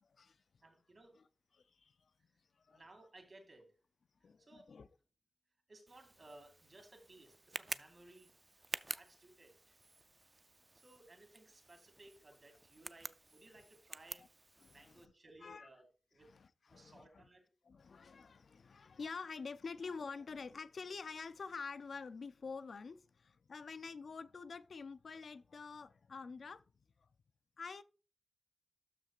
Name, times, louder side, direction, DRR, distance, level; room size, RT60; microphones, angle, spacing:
voice 1, 0.0-0.4 1.1-1.3 1.5-2.1 2.5-2.8 4.2-4.9 14.1-14.3 14.6-15.1 15.4-15.7 16.2-17.3 17.6-26.6 27.0-27.1 27.6-27.8, left 4 dB, 70° left, 0.4 m, -48 dB
voice 2, 0.6-1.2 2.7-3.7 4.4-4.7 5.7-8.3 8.7-9.7 10.7-14.3 14.6-15.8 16.1-16.3 16.7-17.4, right 2 dB, 45° right, 2.5 m, -60 dB
Tick, 5.9-15.1, right 2 dB, 25° right, 0.4 m, -50 dB
12.5 x 5.9 x 2.4 m
wide cardioid pair, 70°, 0 cm